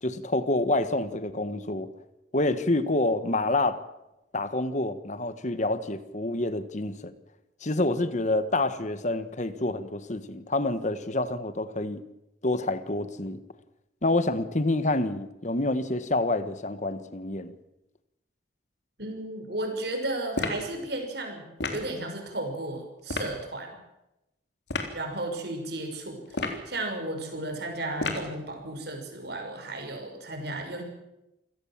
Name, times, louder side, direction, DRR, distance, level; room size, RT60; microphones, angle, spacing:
voice 1, 0.0-1.9 2.3-3.8 4.3-7.1 7.6-12.0 12.4-13.4 14.0-17.5, left 2 dB, 40° left, 12 dB, 1.4 m, -27 dB
voice 2, 19.0-23.7 24.9-30.8, right 2 dB, 60° right, 3 dB, 6.1 m, -34 dB
sound 1, 20.3-20.7 21.6-21.9 23.1-23.3 24.7-24.9 26.3-26.7 28.0-28.3, left 2 dB, 65° left, 3.5 m, -31 dB
28.0 x 17.0 x 7.5 m, 0.93 s
head